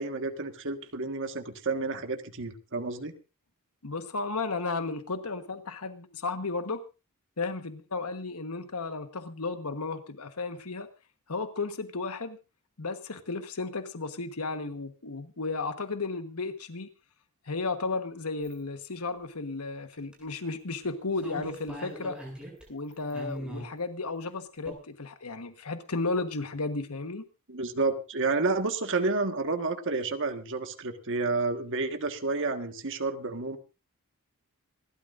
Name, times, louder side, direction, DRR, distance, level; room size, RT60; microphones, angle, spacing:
voice 1, 0.0-3.1 27.5-33.6, right 3 dB, 60° right, 6 dB, 1.6 m, -30 dB
voice 2, 3.8-6.8 7.4-10.9 11.3-12.4 12.8-16.9 17.5-22.2 22.7-27.2, left 3 dB, 85° left, 8 dB, 1.3 m, -34 dB
sound 1, 18.4-18.5 19.9-20.2 20.9-21.0 21.2-22.6 22.9-23.7 24.7-24.8, equal, 5° right, 7.6 m, -40 dB
27.5 x 12.5 x 2.6 m, 0.30 s
head